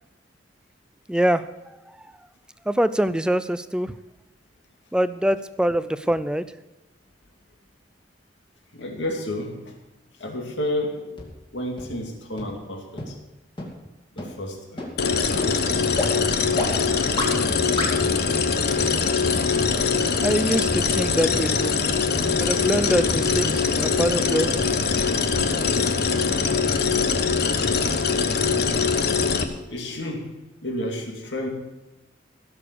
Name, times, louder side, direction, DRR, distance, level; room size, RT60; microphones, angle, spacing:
voice 1, 1.1-1.5 2.7-3.9 4.9-6.4 20.2-21.8 22.3-24.6, right 1 dB, 5° right, 14 dB, 0.4 m, -24 dB
voice 2, 8.7-9.8 10.2-11.3 11.5-13.2 14.1-15.0 29.7-31.5, left 1 dB, 70° left, 1 dB, 2.3 m, -31 dB
sound 1, 11.2-11.3 11.8-11.9 12.4-12.5 13.0-13.1 13.6-13.7 14.2-14.3 14.8-14.9 15.4-15.5 16.0-16.1 16.6-16.7 17.2-17.3 17.8-17.9, left 2 dB, 25° left, 2.3 m, -27 dB
sound 2, 15.0-29.4, left 5 dB, 55° left, 1.0 m, -22 dB
16.0 x 6.9 x 6.8 m, 1.0 s
head